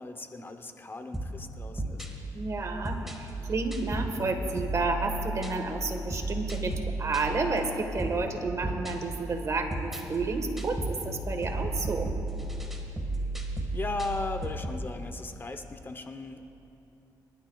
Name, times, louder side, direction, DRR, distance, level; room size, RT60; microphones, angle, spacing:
voice 1, 0.0-2.0 13.7-16.6, left 3 dB, 30° left, 7 dB, 0.8 m, -37 dB
sound 1, 1.1-14.9, right 1 dB, 5° right, 1.7 m, -35 dB
voice 2, 2.3-6.7 7.0-12.1, right 3 dB, 45° right, 5 dB, 1.4 m, -31 dB
24.5 x 12.5 x 2.3 m, 2.9 s
cardioid pair, 85°, 7 cm